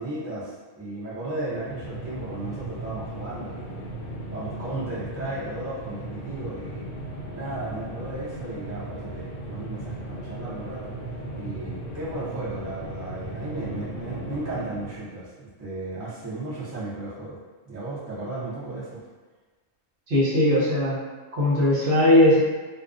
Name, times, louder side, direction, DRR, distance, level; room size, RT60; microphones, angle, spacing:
voice 1, 0.0-3.9 4.3-6.9 7.3-10.9 11.3-17.4 17.6-19.0, right 2 dB, 25° right, -9 dB, 0.4 m, -35 dB
sound 1, 1.3-15.2, right 1 dB, 70° left, 0.8 m, -37 dB
voice 2, 20.1-21.0 21.4-22.4, left 1 dB, 60° right, -8 dB, 0.8 m, -19 dB
2.4 x 2.2 x 2.4 m, 1.3 s
omnidirectional pair, 1.2 m